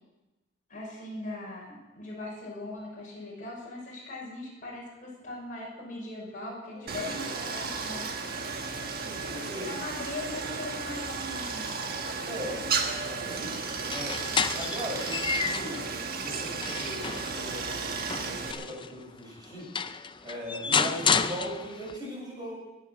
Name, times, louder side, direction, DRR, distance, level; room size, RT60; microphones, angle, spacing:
voice 1, 0.7-8.0 9.6-11.7, left 2 dB, 40° left, -3 dB, 5.9 m, -40 dB
voice 2, 6.7-7.2 9.1-9.7 12.3-12.6 13.2-13.6 13.9-14.2 14.6-17.9 18.2-19.7 20.2-22.6, equal, 20° right, -5 dB, 6.9 m, -39 dB
Stream, 6.9-18.5, right 4 dB, 50° right, 1.4 m, -34 dB
sound 1, 13.8-15.8 16.3-18.9 19.4-19.5 19.7-22.0, left 6 dB, 25° left, 0.5 m, -30 dB
20.5 x 9.1 x 6.3 m, 1.1 s
head